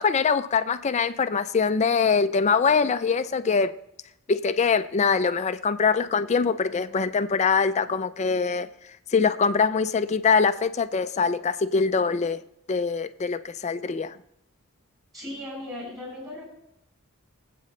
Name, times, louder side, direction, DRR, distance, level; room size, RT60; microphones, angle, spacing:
voice 1, 0.0-3.7 4.3-8.7 9.1-12.4 12.7-14.2, left 5 dB, 30° left, 0.4 m, -23 dB
voice 2, 15.1-16.5, left 1 dB, 15° right, 6.4 m, -37 dB
24.0 x 8.4 x 3.2 m
head